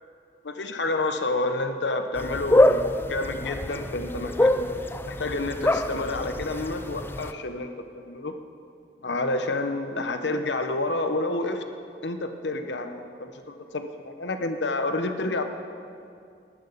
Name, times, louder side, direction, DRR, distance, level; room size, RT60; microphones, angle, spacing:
voice 1, 0.4-4.7 5.0-8.4 9.0-11.7 12.0-15.4, left 2 dB, 80° left, 7 dB, 1.0 m, -29 dB
sound 1, 2.2-7.3, left 1 dB, 15° left, 0.4 m, -25 dB
19.0 x 11.0 x 4.1 m, 2.4 s
head